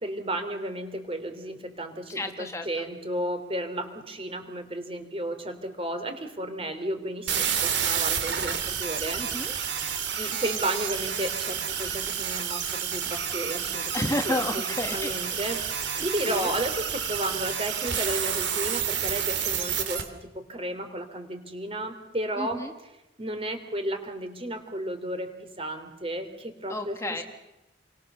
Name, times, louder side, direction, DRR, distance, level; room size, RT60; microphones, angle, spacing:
voice 1, 0.0-9.2 10.2-13.9 14.2-14.6 14.9-22.6 23.2-27.0, right 1 dB, 30° right, 7 dB, 3.4 m, -33 dB
voice 2, 2.1-2.8 9.2-9.6 13.9-15.3 15.9-16.5 22.4-22.7 26.7-27.2, left 1 dB, 15° left, 5 dB, 1.4 m, -32 dB
sound 1, 7.3-20.0, right 8 dB, 70° right, 3.0 m, -30 dB
29.5 x 23.5 x 7.0 m, 0.99 s
head